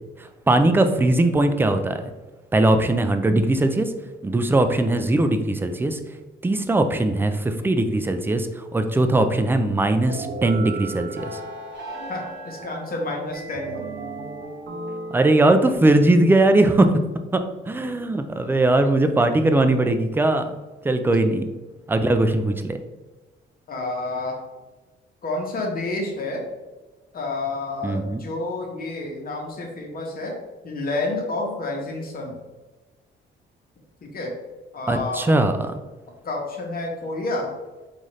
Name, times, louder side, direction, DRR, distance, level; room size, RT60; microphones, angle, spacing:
voice 1, 0.2-2.0 2.5-3.9 4.2-6.0 6.4-11.4 15.1-16.9 17.3-20.6 20.8-21.5 21.9-22.8 27.8-28.2 34.9-35.8, right 2 dB, 10° right, 8 dB, 0.3 m, -20 dB
sound 1, 10.1-15.8, right 3 dB, 60° right, 0.8 m, -35 dB
voice 2, 12.1-13.9 21.2-21.4 23.7-24.4 25.2-26.4 27.1-30.4 30.6-32.4 34.0-34.3 34.7-35.4 36.2-37.5, left 2 dB, 45° left, 0 dB, 1.0 m, -29 dB
3.9 x 2.5 x 3.1 m, 1.2 s
cardioid pair, 90°, 20 cm